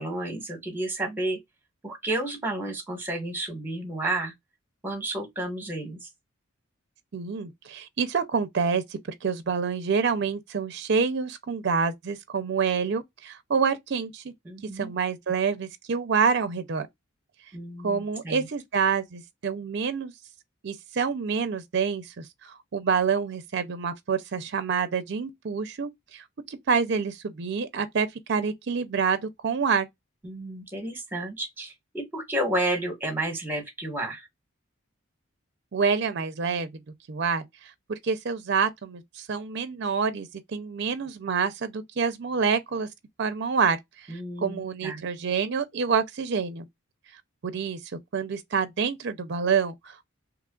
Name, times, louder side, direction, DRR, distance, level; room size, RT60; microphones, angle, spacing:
voice 1, 0.0-1.4 1.8-4.3 4.8-6.1 14.4-14.9 17.5-18.5 30.2-34.3 44.1-45.0, right 1 dB, 10° right, 1.1 m, -31 dB
voice 2, 7.1-14.3 14.7-16.9 17.8-20.1 20.6-29.9 35.7-36.7 37.1-42.9 43.2-46.6 47.4-50.1, right 5 dB, 55° right, 0.4 m, -27 dB
2.9 x 2.3 x 3.6 m
head